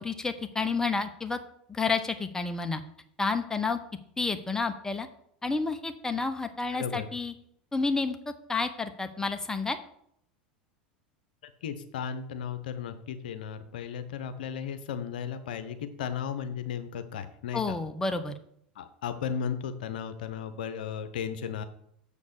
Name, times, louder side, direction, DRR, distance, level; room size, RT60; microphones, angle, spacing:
voice 1, 0.0-1.4 1.7-2.8 3.2-3.8 4.2-5.1 5.4-7.3 7.7-9.8 17.5-18.3, left 4 dB, 10° left, 8 dB, 0.9 m, -30 dB
voice 2, 6.7-7.1 11.6-17.8 18.8-21.6, left 7 dB, 75° left, 10 dB, 0.7 m, -35 dB
6.7 x 5.3 x 6.7 m, 0.71 s
hypercardioid pair, 90°, 5 cm